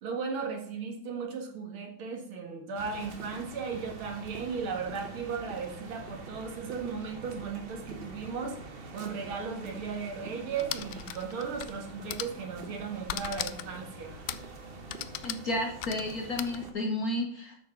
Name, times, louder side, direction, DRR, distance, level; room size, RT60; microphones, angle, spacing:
voice 1, 0.0-14.2, right 5 dB, 80° right, 2 dB, 2.6 m, -36 dB
sound 1, 2.7-16.7, right 3 dB, 40° right, 0.9 m, -45 dB
sound 2, 10.5-11.8 12.1-12.4 13.1-13.8 14.3-14.5 14.9-16.6, left 12 dB, 70° left, 1.0 m, -37 dB
voice 2, 15.2-17.6, left 1 dB, 50° left, 2 dB, 1.4 m, -32 dB
8.2 x 6.5 x 6.0 m, 0.63 s
omnidirectional pair, 2.3 m